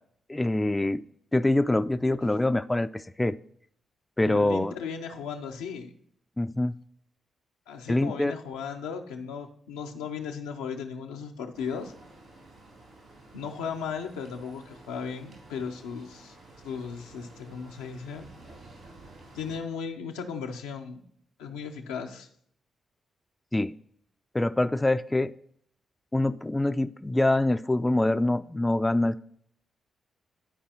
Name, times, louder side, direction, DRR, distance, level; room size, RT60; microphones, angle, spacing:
voice 1, 0.3-1.0 1.3-3.4 4.2-4.7 6.4-6.7 7.9-8.3 23.5-23.7 24.3-25.3 26.1-29.2, left 2 dB, 20° left, 12 dB, 0.3 m, -25 dB
voice 2, 4.2-5.9 7.7-11.9 13.3-16.4 16.6-18.3 19.3-21.0 21.4-22.3, left 6 dB, 90° left, 3 dB, 0.6 m, -36 dB
sound 1, 11.5-19.6, right 2 dB, 75° right, 3.4 m, -51 dB
12.0 x 4.7 x 2.9 m, 0.65 s
hypercardioid pair, 40°, 0 cm